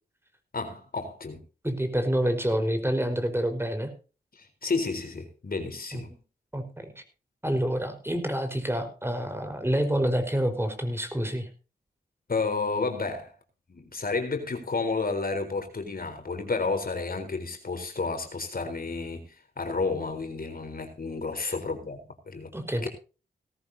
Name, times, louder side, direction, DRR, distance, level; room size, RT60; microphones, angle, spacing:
voice 1, 0.5-1.4 4.4-6.1 12.3-13.3 13.7-19.3 19.6-22.5 22.8-22.9, left 4 dB, 55° left, 4.0 m, -31 dB
voice 2, 1.6-3.9 5.9-6.2 6.5-7.0 7.4-11.5 21.4-21.5 22.5-22.9, equal, 15° right, 4.7 m, -28 dB
18.0 x 14.0 x 2.8 m
cardioid pair, 40°, 18 cm